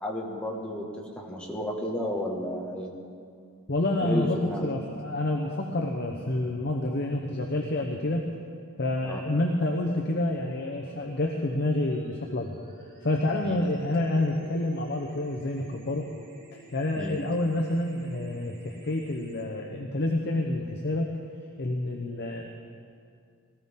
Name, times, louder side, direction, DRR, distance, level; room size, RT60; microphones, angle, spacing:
voice 1, 0.0-2.9 4.0-4.7 9.0-9.2 13.4-13.6 17.0-17.2, left 1 dB, 5° left, -3 dB, 1.7 m, -32 dB
voice 2, 3.7-8.3 8.8-12.6 13.0-16.1 16.5-21.1 21.6-22.5, left 1 dB, 50° left, 1 dB, 0.8 m, -28 dB
sound 1, 9.4-19.4, right 1 dB, 40° right, 2.1 m, -51 dB
19.0 x 14.0 x 3.7 m, 2.3 s
head